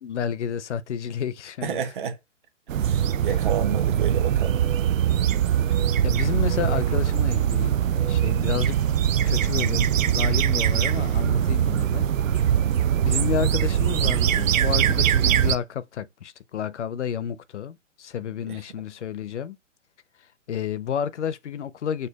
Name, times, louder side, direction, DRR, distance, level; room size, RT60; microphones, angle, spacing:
voice 1, 0.0-1.8 6.0-8.8 9.2-12.6 13.0-19.6 20.5-22.1, left 8 dB, 65° left, 0.6 m, -31 dB
voice 2, 1.6-2.2 2.7-4.6 18.5-18.6, right 7 dB, 40° right, 0.9 m, -30 dB
sound 1, 2.7-15.6, right 10 dB, 85° right, 0.5 m, -22 dB
6.6 x 2.4 x 2.3 m
hypercardioid pair, 155°, 38 cm